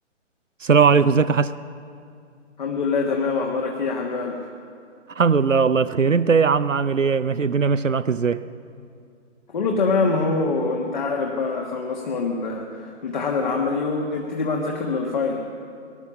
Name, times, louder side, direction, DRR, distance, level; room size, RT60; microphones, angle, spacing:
voice 1, 0.6-1.5 5.2-8.4, right 5 dB, 90° right, 14 dB, 0.6 m, -19 dB
voice 2, 2.6-4.5 9.5-15.4, left 4 dB, 40° left, 1 dB, 1.5 m, -24 dB
19.5 x 12.0 x 6.2 m, 2.4 s
figure-of-eight pair, 135°, 37 cm